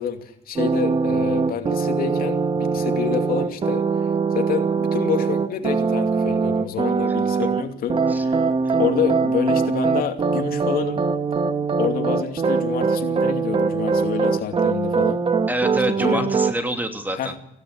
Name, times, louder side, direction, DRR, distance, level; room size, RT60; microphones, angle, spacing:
voice 1, 0.0-3.9 4.3-8.5 8.8-11.0 11.8-15.2 16.0-16.3 17.1-17.4, left 8 dB, 60° left, 6 dB, 2.6 m, -28 dB
sound 1, 0.6-7.6 7.9-16.5, right 4 dB, 30° right, 1.4 m, -22 dB
voice 2, 15.5-17.3, right 1 dB, 10° right, 6 dB, 2.6 m, -26 dB
17.5 x 16.0 x 9.9 m, 0.75 s
cardioid pair, 110°, 17 cm